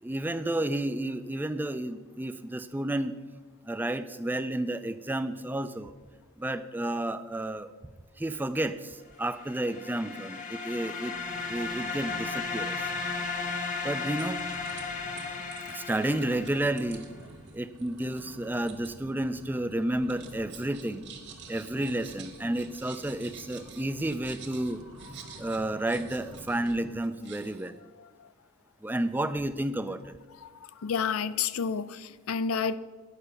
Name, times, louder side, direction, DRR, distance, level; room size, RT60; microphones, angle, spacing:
voice 1, 0.0-3.1 3.7-5.9 6.4-7.7 8.2-11.1 11.5-12.8 13.8-14.4 15.7-17.1 17.5-21.1 21.5-24.8 25.4-27.8 28.8-30.2, right 1 dB, 10° right, 11 dB, 0.3 m, -31 dB
sound 1, 8.8-9.2 9.5-9.9 10.3-10.4 11.0-27.2, right 2 dB, 90° right, 0.8 m, -50 dB
sound 2, 9.3-17.0, left 4 dB, 35° left, 0.9 m, -35 dB
sound 3, 13.8-13.9 14.1-14.9 15.2-18.9 19.2-19.7 20.1-26.8 27.0-27.7, right 8 dB, 55° right, 1.5 m, -49 dB
voice 2, 30.4-32.8, left 6 dB, 80° left, 15 dB, 0.4 m, -30 dB
9.8 x 5.6 x 6.8 m, 1.4 s
head